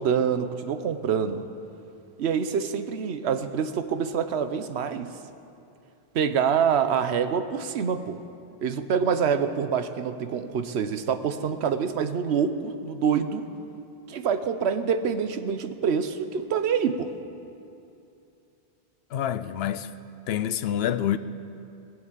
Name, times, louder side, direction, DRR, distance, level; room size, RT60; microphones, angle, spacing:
voice 1, 0.0-1.4 2.2-5.1 6.1-8.2 8.6-13.4 14.1-17.1, right 7 dB, 80° right, 1.0 m, -26 dB
voice 2, 19.1-19.9 20.3-21.2, left 10 dB, 75° left, 0.8 m, -27 dB
19.5 x 7.8 x 7.4 m
omnidirectional pair, 1.1 m